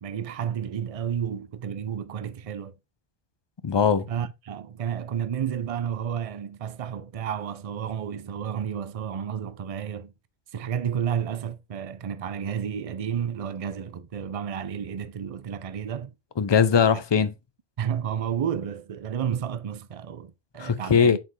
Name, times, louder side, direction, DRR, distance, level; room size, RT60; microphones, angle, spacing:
voice 1, 0.0-2.7 4.1-10.1 10.5-16.1 17.8-21.2, right 8 dB, 45° right, 0.5 m, -31 dB
voice 2, 3.6-4.1 16.4-17.3 20.6-21.2, left 6 dB, 45° left, 0.3 m, -20 dB
7.6 x 4.4 x 3.2 m
omnidirectional pair, 1.1 m